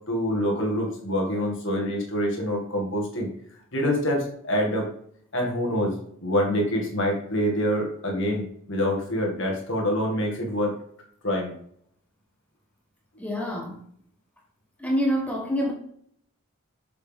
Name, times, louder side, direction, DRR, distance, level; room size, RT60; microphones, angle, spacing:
voice 1, 0.1-3.3 3.7-4.9 5.3-5.9 6.2-10.7 11.2-11.5, equal, 55° left, 2.0 m, -26 dB
voice 2, 13.2-13.8 14.8-15.7, equal, 5° left, 1.3 m, -26 dB
6.8 x 6.4 x 3.6 m
head